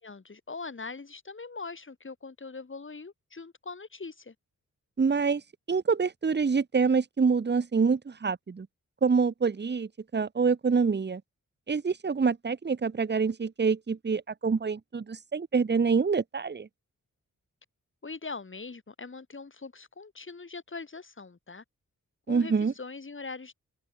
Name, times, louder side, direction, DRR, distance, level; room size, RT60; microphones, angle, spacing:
voice 1, 0.0-4.3 18.0-21.6 22.3-23.5, left 4 dB, 40° left, 3.2 m, -41 dB
voice 2, 5.0-5.4 5.7-8.7 9.0-11.2 11.7-16.7 22.3-22.7, right 5 dB, 35° right, 1.0 m, -26 dB
wide cardioid pair, 90°, 32 cm